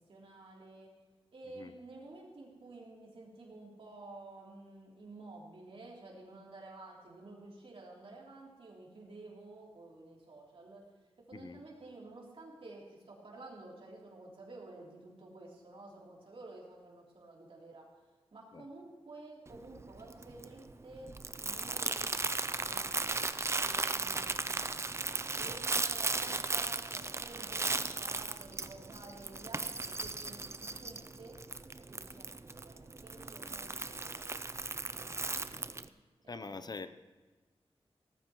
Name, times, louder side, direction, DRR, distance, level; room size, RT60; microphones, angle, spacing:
voice 1, 0.1-0.9 1.3-10.8 11.2-17.9 18.3-21.1 21.4-31.4 31.9-34.3 34.9-35.9 36.2-36.8, right 2 dB, 60° right, -3 dB, 3.2 m, -52 dB
Crumpling crinkling, 19.5-35.9, right 3 dB, 25° right, 0.5 m, -37 dB
voice 2, 36.3-36.9, left 3 dB, 40° left, 12 dB, 0.6 m, -44 dB
17.5 x 14.5 x 3.1 m, 1.3 s
wide cardioid pair, 115°, 11 cm